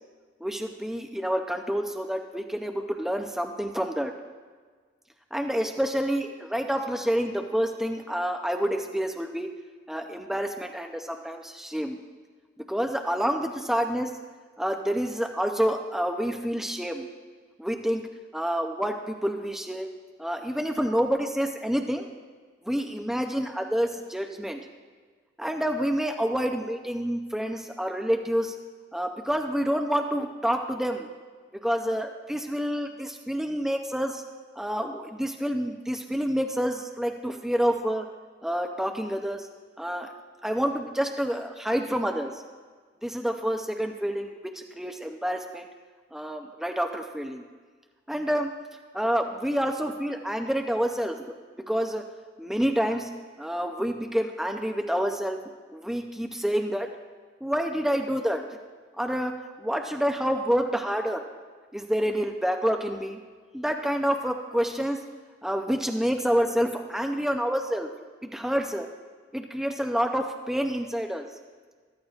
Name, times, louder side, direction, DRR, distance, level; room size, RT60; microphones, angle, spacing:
voice 1, 0.4-4.1 5.3-9.5 9.9-12.0 12.6-14.1 14.6-17.1 17.6-18.0 18.3-19.9 20.2-22.1 22.6-24.6 25.4-28.6 28.9-31.1 31.6-34.2 34.6-38.1 38.4-39.5 39.8-40.1 40.4-42.4 43.0-45.7 46.1-47.4 48.1-48.5 48.9-51.2 51.7-52.0 52.4-53.1 53.4-55.4 55.7-56.9 57.4-58.4 59.0-61.2 61.7-63.2 63.5-65.0 65.4-67.9 68.3-68.9 69.3-71.3, equal, ahead, 4 dB, 0.5 m, -28 dB
14.0 x 12.5 x 2.4 m, 1.5 s
head